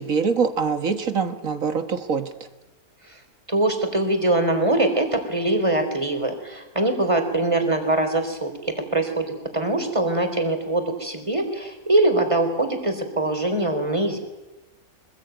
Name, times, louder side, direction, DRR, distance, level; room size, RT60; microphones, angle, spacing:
voice 1, 0.0-2.3, right 5 dB, 65° right, 9 dB, 2.0 m, -24 dB
voice 2, 3.5-14.2, right 2 dB, 20° right, 6 dB, 3.8 m, -23 dB
25.5 x 20.5 x 9.2 m, 1.1 s
omnidirectional pair, 1.5 m